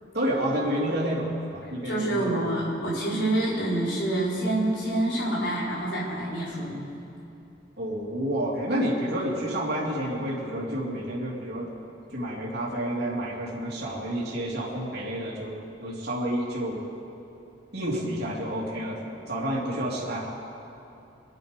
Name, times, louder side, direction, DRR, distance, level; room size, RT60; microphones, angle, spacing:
voice 1, 0.1-2.4 7.8-11.7 12.1-16.8 17.7-20.3, equal, 60° right, -6 dB, 3.0 m, -29 dB
voice 2, 1.8-6.8, right 1 dB, 75° left, -6 dB, 4.5 m, -27 dB
24.5 x 10.5 x 5.3 m, 2.7 s
head